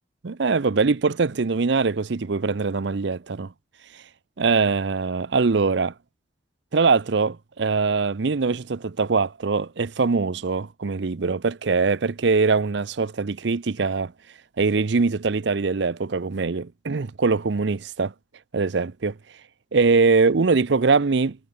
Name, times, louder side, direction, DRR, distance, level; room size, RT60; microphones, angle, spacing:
voice 1, 0.2-3.5 4.4-5.9 6.7-14.1 14.6-18.1 18.5-19.2 19.7-21.4, right 4 dB, 60° right, 0.6 m, -22 dB
head